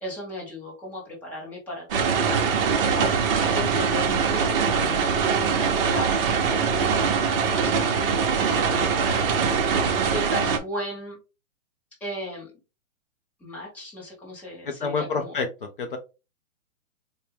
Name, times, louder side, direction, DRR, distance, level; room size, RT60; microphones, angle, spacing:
voice 1, 0.0-9.9 10.1-11.2 12.0-12.5 13.4-15.4, left 1 dB, 5° left, -4 dB, 0.7 m, -36 dB
sound 1, 1.9-10.6, right 6 dB, 40° right, 0.8 m, -23 dB
voice 2, 14.7-16.0, left 4 dB, 40° left, 4 dB, 0.5 m, -28 dB
4.4 x 2.2 x 3.3 m, 0.29 s
hypercardioid pair, 155°, 41 cm